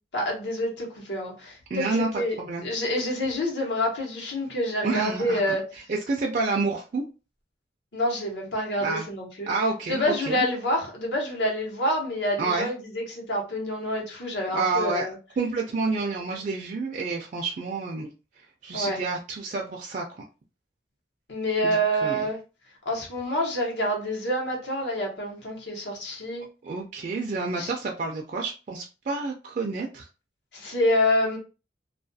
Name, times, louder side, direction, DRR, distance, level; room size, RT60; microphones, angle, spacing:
voice 1, 0.1-5.6 7.9-9.5 9.9-15.2 16.4-16.5 18.7-19.0 21.3-22.4 22.8-26.5 27.6-27.7 30.5-31.4, equal, 75° left, 0.9 m, -27 dB
voice 2, 1.7-2.1 2.4-2.7 4.8-5.5 5.9-7.0 8.8-9.1 9.5-10.5 12.4-12.7 14.5-15.1 15.4-18.1 18.6-20.2 21.7-22.2 26.6-30.1, right 3 dB, 45° right, 0.3 m, -29 dB
2.4 x 2.2 x 2.6 m
head